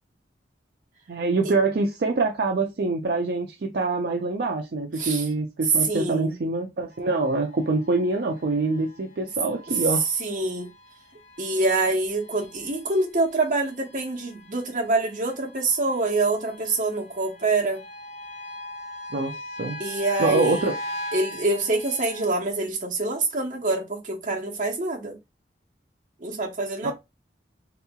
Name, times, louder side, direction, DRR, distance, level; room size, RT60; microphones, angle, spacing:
voice 1, 1.1-10.1 19.1-19.8 20.2-20.7 26.8-26.9, right 3 dB, 65° right, 0.4 m, -25 dB
voice 2, 5.8-6.4 10.2-10.7 11.4-17.8 19.8-20.6 21.1-25.2 26.2-26.9, right 2 dB, 45° right, 1.0 m, -26 dB
sound 1, 6.9-22.3, left 1 dB, 40° left, 0.5 m, -40 dB
3.6 x 2.9 x 2.3 m
head